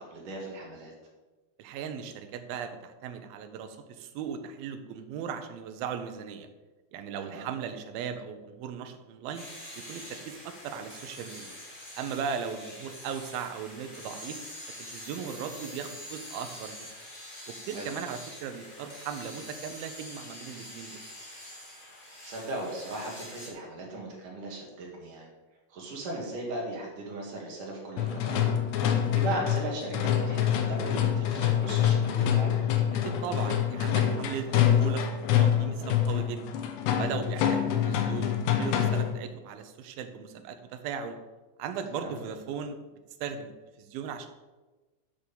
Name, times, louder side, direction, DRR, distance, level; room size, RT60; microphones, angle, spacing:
voice 1, 0.1-0.9 7.2-7.5 17.7-17.9 22.3-25.3 25.7-28.5 29.1-32.6 42.0-42.1, right 2 dB, 55° right, -1 dB, 3.2 m, -37 dB
voice 2, 1.6-6.5 6.9-9.4 9.8-11.6 12.0-14.4 14.8-16.9 17.5-21.0 33.0-36.4 37.0-41.2 41.6-42.8 43.2-43.5 43.8-44.3, right 7 dB, 70° right, 7 dB, 2.5 m, -37 dB
sound 1, 9.3-23.5, left 1 dB, 20° left, 1.6 m, -45 dB
sound 2, 28.0-39.2, left 9 dB, 80° left, 3.1 m, -26 dB
9.1 x 6.3 x 7.1 m, 1.2 s
omnidirectional pair, 4.9 m